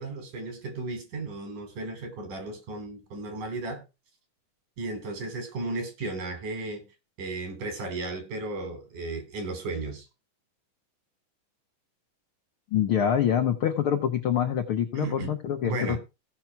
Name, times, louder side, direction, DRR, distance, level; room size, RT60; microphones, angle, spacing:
voice 1, 0.0-3.8 4.8-6.9 7.2-10.1 15.0-15.3 15.6-16.0, right 2 dB, 75° right, 4.6 m, -34 dB
voice 2, 12.7-16.0, left 9 dB, 80° left, 1.2 m, -25 dB
16.5 x 5.9 x 4.6 m
omnidirectional pair, 3.7 m